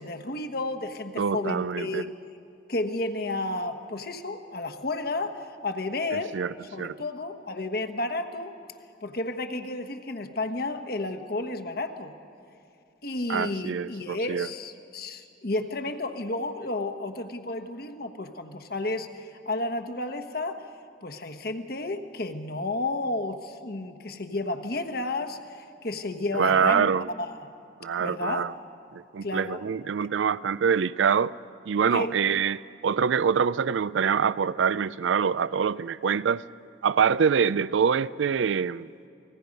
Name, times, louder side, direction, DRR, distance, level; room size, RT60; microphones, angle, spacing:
voice 1, 0.0-2.1 2.7-6.4 6.7-8.5 9.0-12.1 13.0-20.7 21.0-26.9 27.2-27.5 28.0-28.4 29.2-29.6 30.0-30.1 31.9-32.2, left 2 dB, 55° left, 1.2 m, -32 dB
voice 2, 1.2-2.0 6.1-7.0 13.3-14.5 26.3-27.1 27.8-28.5 28.9-31.4 31.7-36.4 36.8-38.9, right 6 dB, 85° right, 0.4 m, -25 dB
28.5 x 20.0 x 5.3 m
head